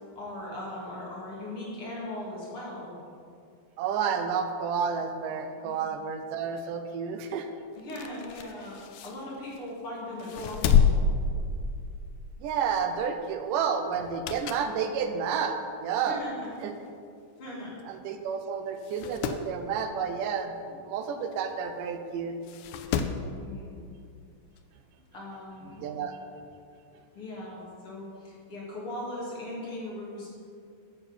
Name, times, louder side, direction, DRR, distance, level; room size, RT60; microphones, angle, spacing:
voice 1, 0.1-3.0 5.6-6.0 7.8-10.9 16.0-16.5 17.4-17.8 23.3-23.9 25.1-25.8 27.1-30.3, left 1 dB, 45° left, -5 dB, 3.3 m, -39 dB
voice 2, 3.8-7.5 12.4-16.2 16.6-16.7 17.9-20.6 20.8-22.4 25.8-26.2, right 6 dB, 85° right, 7 dB, 2.4 m, -30 dB
sound 1, 7.8-9.7 10.2-12.1 12.4-12.7 13.9-14.8 15.2-15.3 16.2-16.3 16.6-16.7 16.8-16.9 17.8-18.0 18.3-18.4 18.8-19.5 21.3-21.4 22.4-23.3 24.6-24.7, left 6 dB, 75° left, 1.9 m, -28 dB
12.0 x 6.8 x 7.1 m, 2.4 s
omnidirectional pair, 3.7 m